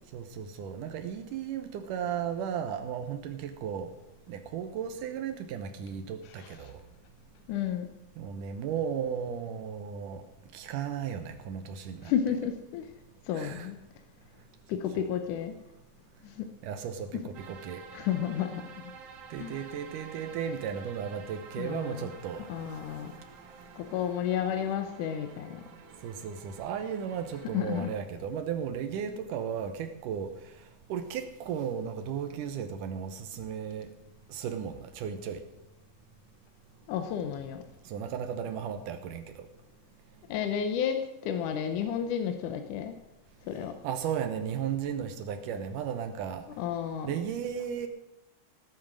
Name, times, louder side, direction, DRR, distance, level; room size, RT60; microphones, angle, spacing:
voice 1, 0.1-3.9 4.3-6.8 8.2-10.2 10.5-12.1 13.3-13.7 15.0-15.1 16.6-17.8 19.3-22.5 26.0-30.6 30.9-33.9 34.3-35.4 37.8-39.5 43.8-46.5 47.0-47.9, right 8 dB, 85° right, 7 dB, 2.5 m, -35 dB
voice 2, 7.5-7.9 12.0-12.8 13.3-13.8 14.7-15.5 16.4-16.5 17.1-17.2 17.9-18.6 19.4-19.6 21.6-22.1 22.5-23.1 23.8-25.6 27.5-27.9 36.9-37.6 40.3-42.9 43.5-43.7 46.6-47.1, left 9 dB, 80° left, 6 dB, 2.4 m, -31 dB
sound 1, 17.3-28.0, right 6 dB, 60° right, 2.1 m, -50 dB
18.0 x 8.8 x 6.3 m, 0.90 s
omnidirectional pair, 3.6 m